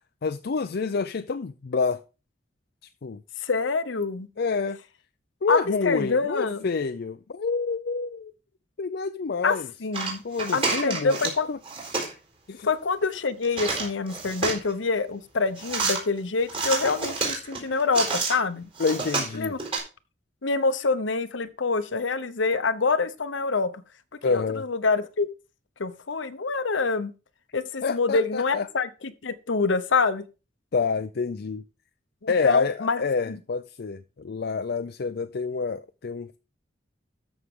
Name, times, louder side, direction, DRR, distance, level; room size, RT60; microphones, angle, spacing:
voice 1, 0.2-2.0 3.0-3.2 4.4-4.8 5.4-8.3 8.8-9.7 10.2-11.2 11.5-11.6 12.5-12.7 18.8-19.6 24.2-24.6 27.8-28.7 30.7-31.6 32.3-36.4, left 4 dB, 60° left, 0.5 m, -27 dB
voice 2, 3.4-4.3 5.5-6.7 9.4-10.2 10.5-11.5 12.6-18.7 19.3-19.6 20.4-23.8 24.2-25.3 25.8-27.1 27.5-30.2 32.2-33.0 33.3-33.4, left 4 dB, 85° left, 0.9 m, -26 dB
sound 1, 9.9-11.4 11.6-12.1 13.4-14.7 15.6-16.0 16.5-18.4 18.8-19.8, right 4 dB, 30° right, 4.1 m, -29 dB
13.0 x 6.3 x 3.7 m
head